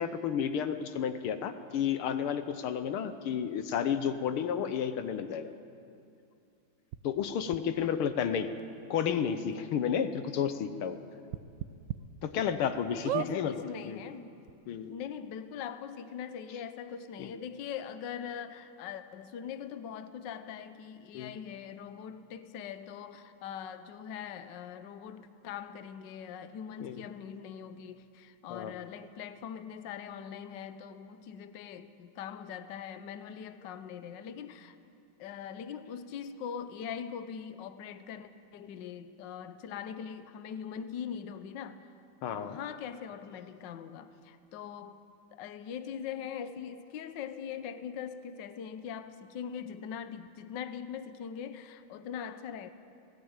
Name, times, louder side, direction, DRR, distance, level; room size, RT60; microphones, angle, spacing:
voice 1, 0.0-5.5 7.0-8.5 8.9-11.0 12.2-13.6 13.9-14.0 14.7-14.9 17.2-17.3 21.1-21.3 26.8-27.0 28.5-28.7 42.2-42.6, left 8 dB, 80° left, 9 dB, 1.8 m, -31 dB
sound 1, 6.9-7.0 7.5-7.6 8.6-8.7 9.0-9.1 9.5-9.6 11.3-12.0 12.5-12.6 13.0-13.3 14.2-14.3 14.4-14.5, right 13 dB, 70° right, 1.2 m, -34 dB
voice 2, 8.2-8.5 12.9-14.3 14.9-34.8 35.2-41.9 42.3-45.0 45.3-52.7, left 8 dB, 65° left, 10 dB, 1.4 m, -42 dB
19.0 x 17.5 x 9.0 m, 2.5 s
omnidirectional pair, 2.4 m